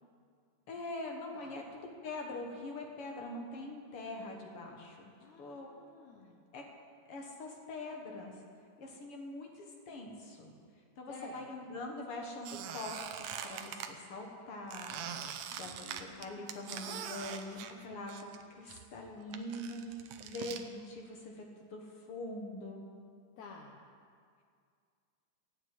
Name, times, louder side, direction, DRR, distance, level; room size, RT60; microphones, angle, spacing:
voice 1, 0.7-1.6 2.0-5.0 5.4-5.7 6.5-6.6 7.1-8.4 8.8-10.5 11.0-22.8, left 2 dB, 50° left, 1 dB, 2.0 m, -43 dB
voice 2, 5.2-6.4 11.1-11.8 15.5-16.5 17.6-18.0 23.4-23.8, left 3 dB, 70° left, 0 dB, 2.1 m, -53 dB
Squeak, 12.4-13.9 14.7-18.4 18.7-20.6, right 8 dB, 80° right, 1.5 m, -43 dB
14.5 x 8.0 x 9.3 m, 2.2 s
omnidirectional pair, 3.9 m